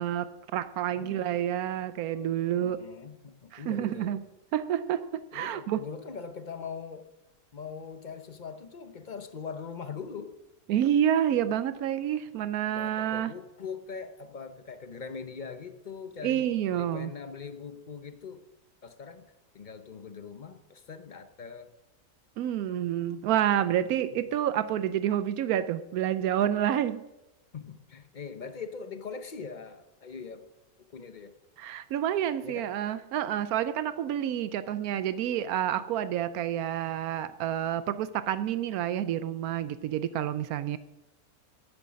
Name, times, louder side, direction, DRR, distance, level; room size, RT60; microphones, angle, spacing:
voice 1, 0.0-2.8 3.5-4.2 4.5-5.8 10.7-13.3 16.2-17.1 22.4-27.0 31.6-40.8, right 10 dB, 85° right, 14 dB, 1.1 m, -29 dB
voice 2, 2.5-4.2 5.3-7.1 7.5-10.3 12.7-16.5 16.7-18.4 18.8-19.3 19.5-21.7 24.1-24.2 27.5-30.5 30.9-31.3 32.4-32.7, left 5 dB, 40° left, 9 dB, 0.8 m, -41 dB
11.0 x 9.7 x 6.4 m, 0.98 s
omnidirectional pair, 1.5 m